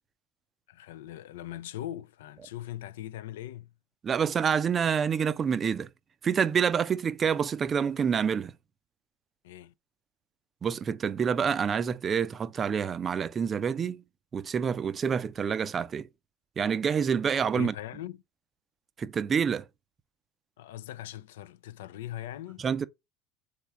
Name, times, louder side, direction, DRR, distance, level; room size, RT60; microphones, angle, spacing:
voice 1, 0.7-3.7 9.4-9.7 17.5-18.2 20.6-22.7, left 13 dB, 80° left, 0.3 m, -40 dB
voice 2, 4.0-5.9 6.2-8.5 10.6-14.0 14.3-16.1 16.6-17.7 19.0-19.6 22.6-22.9, right 7 dB, 30° right, 0.4 m, -27 dB
3.5 x 3.4 x 4.1 m
hypercardioid pair, 95°, 0 cm